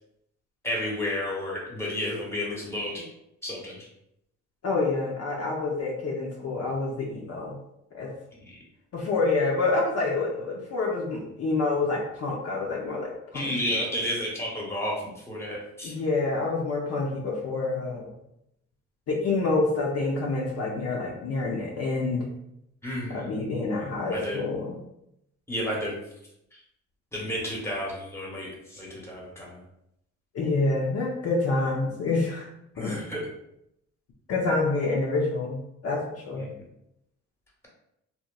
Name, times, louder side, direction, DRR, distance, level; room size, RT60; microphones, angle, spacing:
voice 1, 0.6-3.1 3.4-3.8 13.3-15.0 15.3-15.9 22.8-23.3 24.1-24.4 25.5-26.0 27.1-29.6 32.8-33.2 36.4-36.5, left 1 dB, 10° left, -4 dB, 0.9 m, -31 dB
voice 2, 4.6-7.6 7.9-8.1 8.9-13.5 15.8-18.1 19.1-22.3 23.1-24.8 30.3-32.5 32.8-32.9 34.3-36.5, left 3 dB, 55° left, -2 dB, 0.6 m, -27 dB
2.9 x 2.1 x 2.2 m, 0.81 s
cardioid pair, 90°, 30 cm